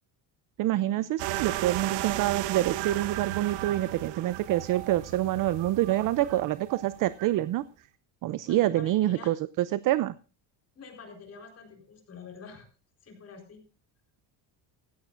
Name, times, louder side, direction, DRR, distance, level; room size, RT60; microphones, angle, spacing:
voice 1, 0.6-7.6 8.2-10.2, right 14 dB, 45° right, 16 dB, 0.5 m, -27 dB
sound 1, 1.2-7.4, right 15 dB, 75° right, 0.9 m, -35 dB
voice 2, 8.5-9.3 10.7-12.7 13.0-13.6, left 5 dB, 35° left, 3 dB, 4.2 m, -47 dB
16.5 x 14.0 x 2.5 m, 0.36 s
cardioid pair, 150°, 44 cm